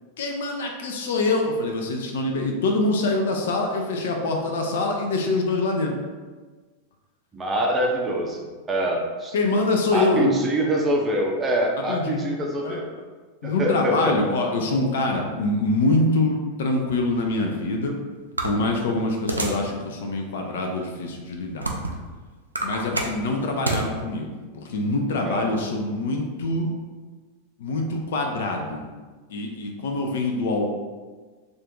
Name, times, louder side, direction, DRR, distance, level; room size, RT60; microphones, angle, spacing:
voice 1, 0.2-6.0 9.3-10.3 11.9-12.3 12.6-12.8 13.4-18.0 18.4-21.7 22.6-26.7 27.6-28.9 29.3-30.6, left 2 dB, 60° left, 2 dB, 0.4 m, -25 dB
voice 2, 7.3-9.3 9.9-12.9 13.4-14.3 25.2-25.5, right 1 dB, 20° right, 0 dB, 0.5 m, -25 dB
sound 1, 18.4-19.7 20.2-20.4 21.0-22.1 22.4-23.8, right 2 dB, 80° right, 0.4 m, -28 dB
2.5 x 2.4 x 3.7 m, 1.4 s
figure-of-eight pair, 90°, 0 cm